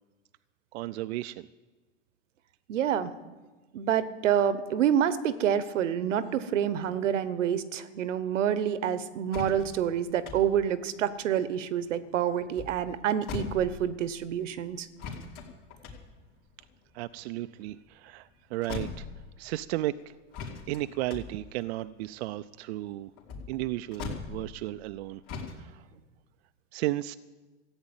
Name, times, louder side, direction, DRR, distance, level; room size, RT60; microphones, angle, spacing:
voice 1, 0.7-1.5 16.9-19.1 19.4-20.1 20.7-23.1 23.5-25.2 25.6-25.8 26.7-27.2, right 16 dB, 60° right, 12 dB, 0.5 m, -34 dB
voice 2, 2.7-3.1 3.7-14.9, right 9 dB, 85° right, 15 dB, 1.1 m, -27 dB
sound 1, 9.3-12.0 12.4-14.2 15.0-18.3 18.6-19.6 20.3-24.9 25.3-25.6, left 5 dB, 45° left, 3.1 m, -41 dB
14.5 x 8.8 x 8.8 m, 1.3 s
supercardioid pair, 140°, 36 cm